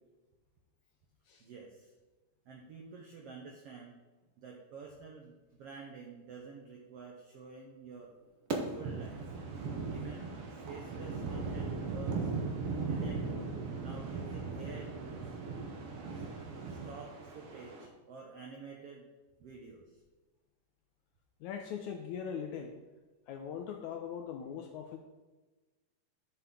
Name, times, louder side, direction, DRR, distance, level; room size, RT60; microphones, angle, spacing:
voice 1, 1.4-1.9 2.4-3.9 4.4-8.1 8.7-9.3 9.9-12.3 12.8-15.4 16.1-19.1 19.4-20.0, right 5 dB, 90° right, 0 dB, 1.3 m, -50 dB
sound 1, 8.5-17.9, right 4 dB, 70° right, 1.3 m, -38 dB
voice 2, 21.4-22.8 23.3-25.0, left 7 dB, 80° left, 4 dB, 1.7 m, -40 dB
11.0 x 6.8 x 3.8 m, 1.2 s
omnidirectional pair, 4.0 m